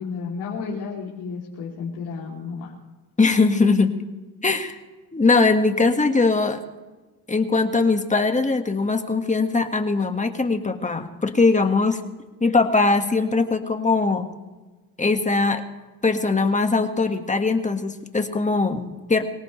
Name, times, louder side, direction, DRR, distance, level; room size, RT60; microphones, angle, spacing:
voice 1, 0.0-2.7, left 5 dB, 85° left, -4 dB, 3.2 m, -32 dB
voice 2, 3.2-4.0 4.4-4.8 5.1-6.6 7.3-12.0 12.4-14.3 15.0-15.6 16.0-19.2, left 3 dB, 20° left, 6 dB, 1.8 m, -21 dB
25.0 x 17.5 x 3.3 m, 1.2 s
cardioid pair, 90°, 39 cm